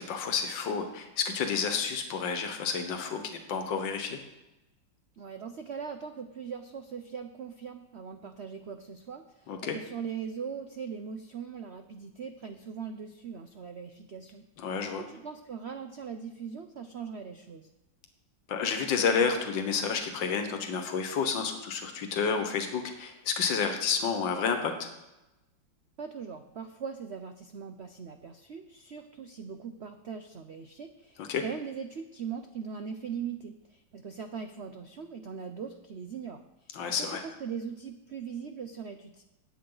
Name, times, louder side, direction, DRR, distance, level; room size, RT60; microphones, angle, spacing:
voice 1, 0.0-4.2 9.5-9.8 14.6-15.0 18.5-24.9 31.2-31.4 36.7-37.2, left 6 dB, 75° left, 5 dB, 1.9 m, -30 dB
voice 2, 5.2-14.4 15.0-17.7 26.0-36.7 37.2-39.2, right 6 dB, 70° right, 7 dB, 0.6 m, -40 dB
18.0 x 8.5 x 3.9 m, 0.97 s
omnidirectional pair, 2.1 m